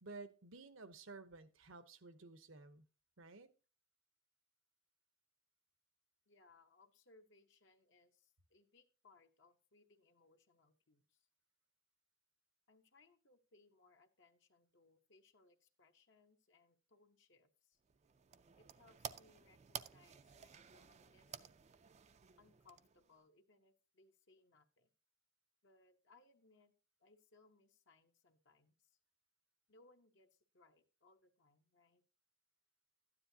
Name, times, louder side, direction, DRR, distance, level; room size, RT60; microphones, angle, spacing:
voice 1, 0.0-2.8 3.2-3.5, right 3 dB, 75° right, 0.9 m, -54 dB
voice 2, 6.3-11.3 12.7-17.8 18.6-21.5 22.4-24.9 25.6-26.7 27.0-29.0 29.7-32.0, left 3 dB, 60° left, 1.0 m, -69 dB
sound 1, 17.8-23.2, right 8 dB, 35° right, 0.4 m, -53 dB
12.5 x 9.8 x 2.8 m
head